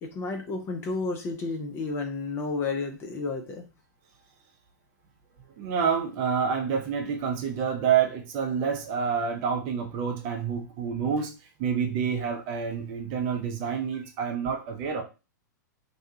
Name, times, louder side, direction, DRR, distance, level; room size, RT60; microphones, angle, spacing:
voice 1, 0.0-3.6, left 3 dB, 25° left, 0.5 m, -31 dB
voice 2, 5.6-11.3 11.6-15.0, right 7 dB, 35° right, 0.6 m, -28 dB
2.7 x 2.2 x 2.7 m
figure-of-eight pair, 105°, 10 cm